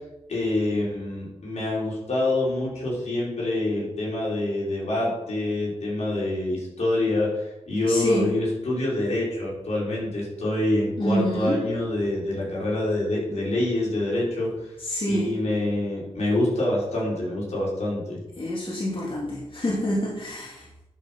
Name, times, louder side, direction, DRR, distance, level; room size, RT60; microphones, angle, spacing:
voice 1, 0.3-14.7 15.1-18.2, left 1 dB, 75° left, -4 dB, 4.2 m, -26 dB
voice 2, 7.9-8.3 11.0-11.6 14.8-15.3 18.4-20.7, equal, 50° left, -5 dB, 2.9 m, -27 dB
11.0 x 5.3 x 5.7 m, 0.93 s
cardioid pair, 50°, 12 cm